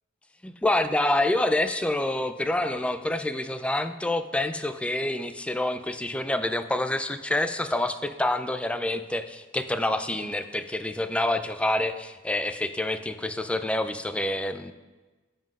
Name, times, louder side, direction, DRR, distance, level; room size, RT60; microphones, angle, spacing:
voice 1, 0.4-14.7, left 1 dB, 5° left, 10 dB, 0.3 m, -27 dB
12.0 x 7.6 x 2.4 m, 1.2 s
head